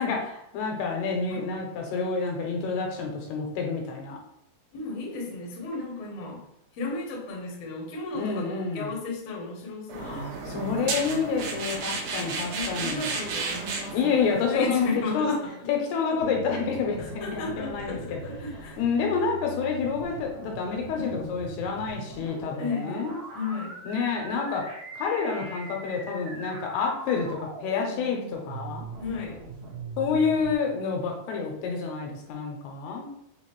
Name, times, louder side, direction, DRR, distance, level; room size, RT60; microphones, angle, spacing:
voice 1, 0.0-4.2 8.1-8.9 10.0-13.2 13.9-14.9 15.1-15.4 15.7-18.2 18.8-23.2 23.9-24.6 24.9-28.9 30.0-33.1, left 5 dB, 80° left, 1 dB, 2.7 m, -28 dB
voice 2, 4.7-6.4 6.7-11.2 12.5-15.3 15.6-15.7 16.1-16.2 17.0-18.8 19.1-19.2 20.9-21.2 22.6-23.7 29.0-29.4, left 3 dB, 65° left, -2 dB, 1.7 m, -34 dB
sound 1, 9.9-14.9, right 4 dB, 75° right, 2.0 m, -33 dB
sound 2, 16.2-30.5, right 4 dB, 60° right, 1.9 m, -41 dB
6.3 x 2.6 x 3.0 m, 0.77 s
omnidirectional pair, 4.8 m